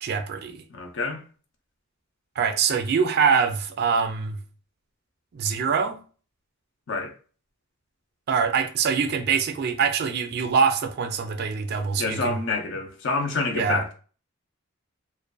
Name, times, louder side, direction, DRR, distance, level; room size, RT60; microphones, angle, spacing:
voice 1, 0.0-0.6 2.4-4.4 5.3-6.0 8.3-12.4 13.6-13.8, right 6 dB, 50° right, 0.3 m, -24 dB
voice 2, 0.7-1.2 6.9-7.1 12.0-13.9, left 3 dB, 60° left, 0.5 m, -27 dB
2.5 x 2.2 x 2.3 m
head